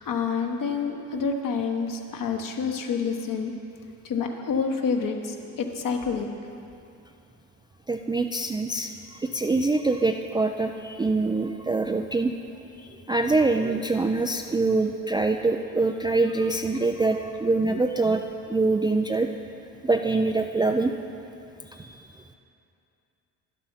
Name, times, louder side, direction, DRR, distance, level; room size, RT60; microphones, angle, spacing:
voice 1, 0.0-3.5 4.0-6.3, left 5 dB, 50° left, 3 dB, 1.3 m, -28 dB
voice 2, 7.9-8.9 9.2-12.3 13.1-18.2 18.5-19.3 19.8-20.9 21.7-22.0, right 3 dB, 10° right, 4 dB, 0.4 m, -24 dB
11.0 x 7.4 x 5.6 m, 2.6 s
hypercardioid pair, 65°, 42 cm